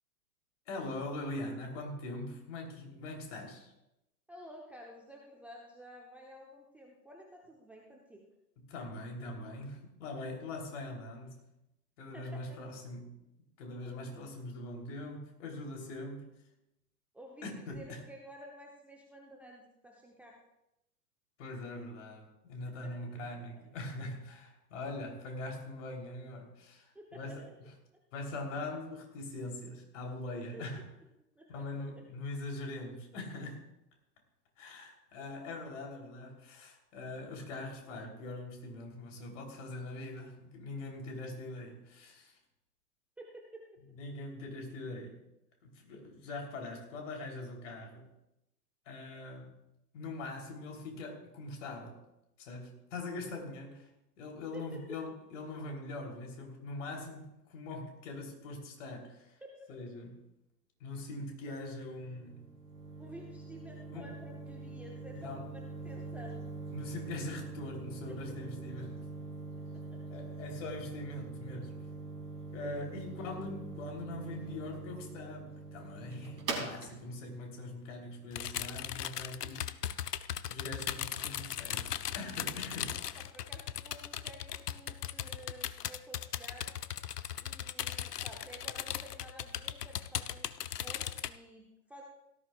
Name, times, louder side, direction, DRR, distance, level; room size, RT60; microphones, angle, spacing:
voice 1, 0.7-3.7 8.7-11.5 12.0-13.2 13.6-16.3 17.4-18.0 21.4-27.5 28.1-30.8 31.5-33.6 34.6-42.4 43.9-45.2 45.6-48.1 48.9-49.6 49.9-52.0 52.4-53.9 54.2-59.4 59.7-60.2 60.8-62.5 63.9-64.1 65.1-65.5 66.7-69.1 70.1-71.8 72.5-83.2, left 2 dB, 50° left, 1 dB, 3.5 m, -42 dB
voice 2, 4.3-8.2 12.1-12.6 17.1-20.4 22.8-22.9 26.9-27.4 30.5-30.7 31.4-31.6 31.9-32.0 35.2-35.3 43.2-43.7 54.5-54.8 63.0-66.5 68.1-68.4 69.6-70.0 83.2-86.8 87.4-92.0, equal, 5° right, -1 dB, 0.8 m, -52 dB
sound 1, 61.4-79.0, right 3 dB, 70° right, 3.9 m, -44 dB
sound 2, 78.3-91.3, left 10 dB, 70° left, 0.7 m, -38 dB
17.5 x 13.5 x 2.4 m, 0.88 s
figure-of-eight pair, 110°, 49 cm